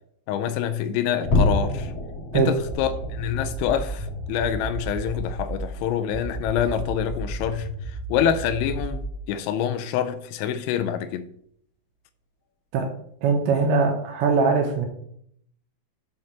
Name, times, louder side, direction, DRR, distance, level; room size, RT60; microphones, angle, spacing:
voice 1, 0.3-1.9 2.3-9.0 9.3-11.3, left 9 dB, 90° left, 2.6 m, -26 dB
sound 1, 1.2-7.9 8.2-8.5 8.9-9.1 9.6-9.8, left 2 dB, 50° left, 2.0 m, -30 dB
sound 2, 2.7-5.7 6.1-9.2, right 2 dB, 90° right, 3.8 m, -33 dB
voice 2, 13.2-14.9, right 5 dB, 75° right, 2.9 m, -21 dB
8.7 x 3.9 x 6.7 m
omnidirectional pair, 5.9 m